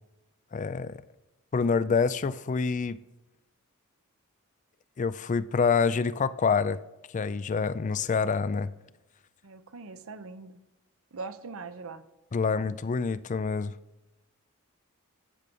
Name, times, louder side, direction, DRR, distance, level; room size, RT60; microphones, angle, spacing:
voice 1, 0.5-1.0 1.5-3.0 5.0-6.8 7.1-8.7 12.3-13.7, left 5 dB, 35° left, 15 dB, 0.4 m, -26 dB
voice 2, 9.4-10.6 11.1-12.0, right 4 dB, 65° right, 11 dB, 0.8 m, -41 dB
13.5 x 7.6 x 5.3 m, 1.0 s
head